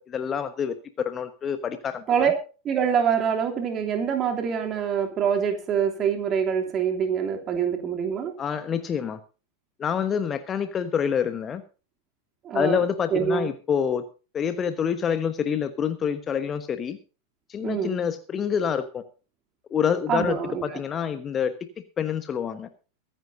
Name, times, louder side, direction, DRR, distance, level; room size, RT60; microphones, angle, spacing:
voice 1, 0.0-2.3 8.4-9.2 9.8-11.6 12.5-14.0 14.3-17.0 17.5-19.0 19.7-21.5 22.0-22.7, left 7 dB, 25° left, 11 dB, 1.2 m, -27 dB
voice 2, 2.1-2.4 2.6-8.3 12.4-12.8 13.1-13.5 17.6-18.0 20.1-20.6, right 7 dB, 30° right, 4 dB, 3.0 m, -25 dB
23.5 x 10.5 x 2.7 m, 0.35 s
figure-of-eight pair, 90°, 0 cm